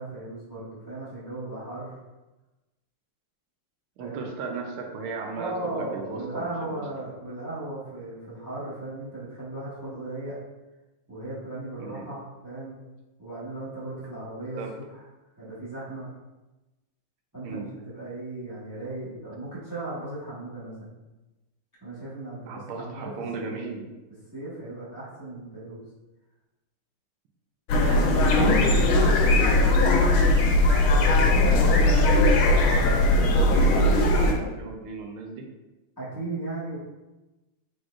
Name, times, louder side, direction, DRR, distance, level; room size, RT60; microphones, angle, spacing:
voice 1, 0.0-2.0 4.0-4.2 5.3-10.4 11.1-12.8 13.2-15.0 15.4-16.1 17.3-20.9 21.8-23.1 23.4-23.6 24.3-25.8 36.0-36.8, right 2 dB, 15° right, -9 dB, 0.9 m, -36 dB
voice 2, 4.0-6.7 11.8-12.1 14.6-14.7 17.4-17.7 22.5-23.9 27.7-30.9 32.6-35.5, right 4 dB, 80° right, 2 dB, 1.5 m, -36 dB
sound 1, 27.7-34.3, left 1 dB, 80° left, 1.5 m, -19 dB
4.6 x 4.1 x 2.4 m, 1.1 s
omnidirectional pair, 2.4 m